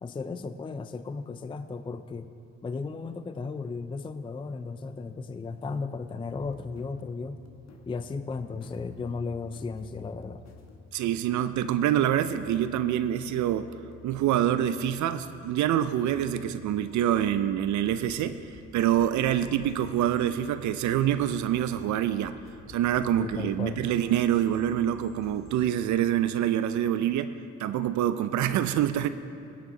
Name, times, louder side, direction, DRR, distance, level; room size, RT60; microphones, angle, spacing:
voice 1, 0.0-2.3 2.6-7.4 7.9-10.4 23.2-23.9, left 4 dB, 15° left, 11 dB, 0.4 m, -35 dB
sound 1, 6.3-25.7, left 4 dB, 60° left, 1.3 m, -51 dB
voice 2, 10.9-13.7 14.0-18.5 18.7-22.4 22.7-27.3 27.6-29.1, right 11 dB, 70° right, 12 dB, 0.5 m, -26 dB
16.5 x 8.1 x 3.8 m, 2.7 s
supercardioid pair, 65°, 31 cm